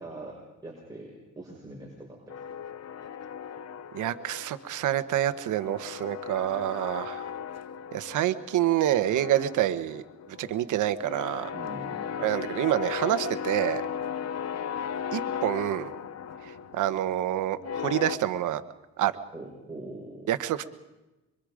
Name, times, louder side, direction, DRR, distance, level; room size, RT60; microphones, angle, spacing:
voice 1, 0.0-2.4 11.5-12.3 19.3-20.3, right 2 dB, 10° right, -3 dB, 6.1 m, -42 dB
sound 1, 2.3-4.8 5.1-8.7 9.0-18.2, left 8 dB, 55° left, 1.2 m, -36 dB
voice 2, 3.9-7.3 7.9-10.0 10.3-11.5 12.2-13.8 15.1-15.9 16.4-18.6 19.0-19.1 20.3-20.6, right 12 dB, 85° right, 12 dB, 1.3 m, -27 dB
26.0 x 24.5 x 5.1 m, 1.0 s
cardioid pair, 90°, 30 cm